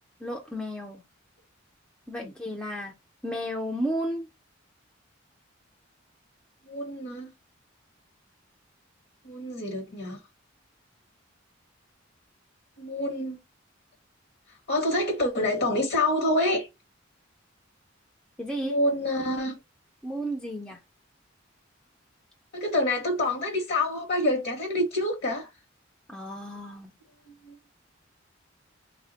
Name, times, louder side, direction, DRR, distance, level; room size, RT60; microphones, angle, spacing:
voice 1, 0.2-1.0 2.1-2.9 3.2-4.3 18.4-18.8 20.0-20.8 26.1-26.9, equal, 5° left, 0.4 m, -33 dB
voice 2, 6.6-7.3 9.2-10.2 12.8-13.4 14.7-16.7 18.6-19.6 22.5-25.5 27.4-27.5, left 1 dB, 55° left, 0.8 m, -27 dB
3.3 x 2.1 x 3.8 m
head